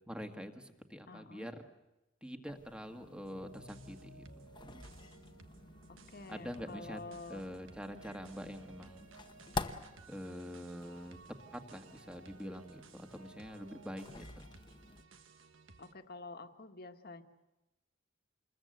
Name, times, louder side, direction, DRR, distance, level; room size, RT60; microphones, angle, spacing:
voice 1, 0.1-1.6 2.2-4.3 6.3-7.0 7.3-9.1 10.1-11.2 11.5-14.5, equal, 5° right, 6 dB, 1.7 m, -45 dB
voice 2, 1.1-1.5 5.9-7.5 15.8-17.2, left 3 dB, 55° left, 6 dB, 1.5 m, -48 dB
sound 1, 2.5-15.0, left 3 dB, 25° left, 1.0 m, -49 dB
sound 2, 2.7-10.0, left 2 dB, 70° left, 1.2 m, -61 dB
sound 3, 3.2-15.9, right 4 dB, 85° right, 1.4 m, -58 dB
28.0 x 21.5 x 7.9 m, 1.0 s
head